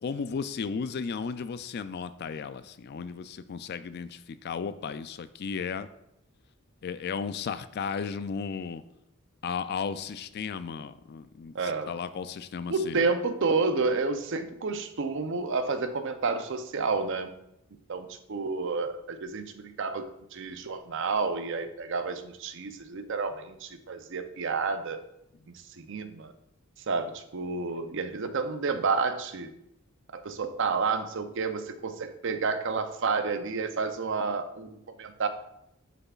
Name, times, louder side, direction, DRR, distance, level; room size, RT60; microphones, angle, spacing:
voice 1, 0.0-5.9 6.8-8.8 9.4-13.1, left 6 dB, 50° left, 13 dB, 0.3 m, -35 dB
voice 2, 11.5-12.0 12.7-17.3 17.9-25.0 25.8-26.3 26.9-29.5 30.1-35.3, right 4 dB, 60° right, 9 dB, 0.6 m, -30 dB
9.3 x 6.8 x 2.4 m, 0.82 s
head